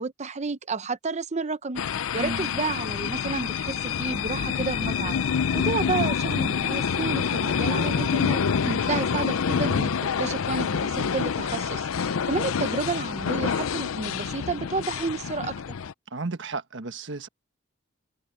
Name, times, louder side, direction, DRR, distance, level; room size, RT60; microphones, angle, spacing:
voice 1, 0.0-1.8 2.1-5.2 5.5-8.4 8.9-15.5, right 4 dB, 35° right, 0.7 m, -31 dB
sound 1, 1.8-15.9, left 6 dB, 90° left, 0.5 m, -27 dB
voice 2, 2.2-2.5 8.6-8.9 16.1-17.3, right 2 dB, 60° right, 1.4 m, -33 dB
head